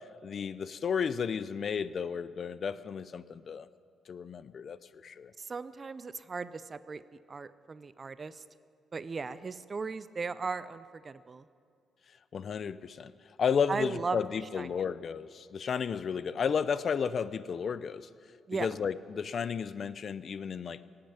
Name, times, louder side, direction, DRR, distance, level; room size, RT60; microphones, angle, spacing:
voice 1, 0.2-3.7 4.1-5.3 12.3-18.1 18.6-20.8, left 6 dB, 45° left, 16 dB, 0.5 m, -33 dB
voice 2, 5.4-8.4 8.9-11.5 13.7-14.2 14.6-14.7 18.5-18.7, right 4 dB, 30° right, 15 dB, 0.5 m, -37 dB
18.0 x 8.7 x 9.0 m, 2.3 s
cardioid pair, 125°, 0 cm